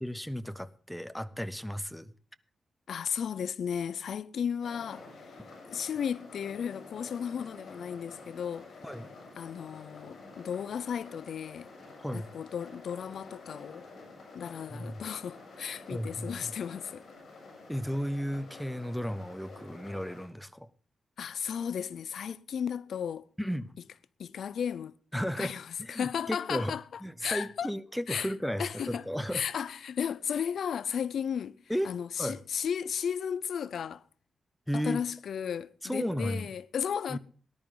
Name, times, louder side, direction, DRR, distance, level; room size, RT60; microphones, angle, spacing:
voice 1, 0.0-2.1 8.8-9.1 12.0-12.3 14.7-15.0 15.9-16.5 17.7-20.7 23.4-23.7 25.1-25.5 25.8-26.7 27.0-29.4 31.7-31.9 32.2-32.4 34.7-35.0 35.8-36.5 37.1-37.2, equal, ahead, 0.7 m, -34 dB
voice 2, 2.9-5.4 5.7-8.7 9.4-11.7 12.1-13.9 14.3-17.0 21.2-23.3 24.2-26.8 27.2-27.7 28.1-28.3 28.6-29.0 29.3-31.6 31.8-34.0 34.7-37.2, left 8 dB, 70° left, 0.5 m, -34 dB
sound 1, 4.6-20.3, left 3 dB, 50° left, 7.3 m, -50 dB
19.0 x 11.0 x 3.8 m
wide cardioid pair, 155°, 0 cm